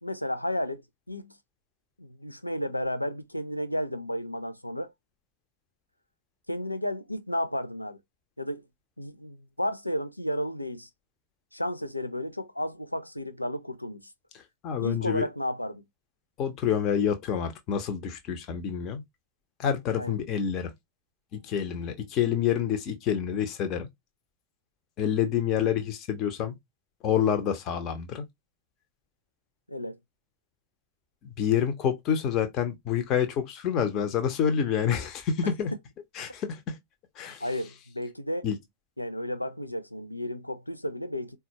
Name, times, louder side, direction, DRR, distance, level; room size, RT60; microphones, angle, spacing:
voice 1, 0.0-0.8 1.1-1.4 2.0-4.9 6.5-8.0 8.4-8.6 9.0-10.9 11.5-14.1 14.8-15.8 20.0-20.2 29.7-30.0 37.4-38.5 39.0-41.4, equal, 85° left, 0.4 m, -32 dB
voice 2, 14.6-15.2 16.4-19.0 19.6-20.7 21.3-23.9 25.0-26.5 27.0-28.2 31.2-35.7 36.1-36.8 37.2-37.4 38.4-38.6, left 8 dB, 35° left, 0.8 m, -27 dB
4.1 x 2.3 x 2.9 m
figure-of-eight pair, 90°, 0 cm